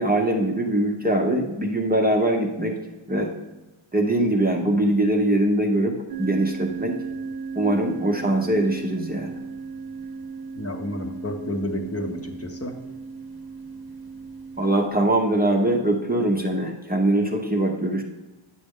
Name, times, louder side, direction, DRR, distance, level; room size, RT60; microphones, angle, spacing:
voice 1, 0.0-2.8 3.1-3.3 3.9-7.0 7.5-9.3 14.6-18.0, right 1 dB, 20° right, 1 dB, 0.7 m, -22 dB
sound 1, 6.1-14.9, right 4 dB, 45° right, 0.8 m, -36 dB
voice 2, 10.6-12.8, left 1 dB, 30° left, 3 dB, 0.8 m, -30 dB
9.2 x 6.5 x 3.6 m, 1.1 s
wide cardioid pair, 130°, 49 cm